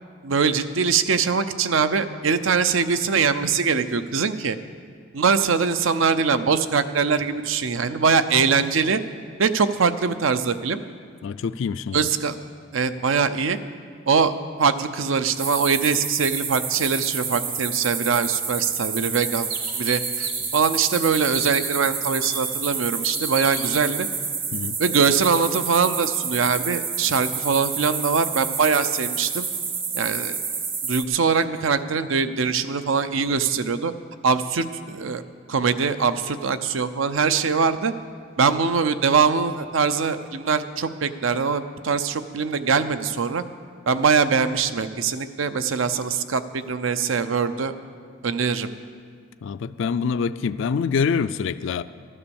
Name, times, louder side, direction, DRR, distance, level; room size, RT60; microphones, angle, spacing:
voice 1, 0.2-4.6 5.1-9.0 9.4-10.8 11.9-12.4 12.7-13.6 14.1-19.5 19.8-24.1 24.8-29.5 29.9-30.4 30.9-33.9 34.2-35.2 35.5-37.9 38.4-43.4 43.9-47.7 48.2-48.7, right 5 dB, 75° right, 12 dB, 0.6 m, -22 dB
voice 2, 11.2-12.1 24.5-24.8 49.4-51.8, left 6 dB, 65° left, 13 dB, 0.3 m, -25 dB
sound 1, 15.4-31.0, right 5 dB, 25° right, 0.7 m, -29 dB
sound 2, 18.5-18.6 19.1-19.2 19.5-20.5 20.8-21.5 22.2-22.3 23.0-23.7, right 5 dB, 50° right, 2.3 m, -31 dB
14.0 x 9.9 x 7.0 m, 2.1 s
head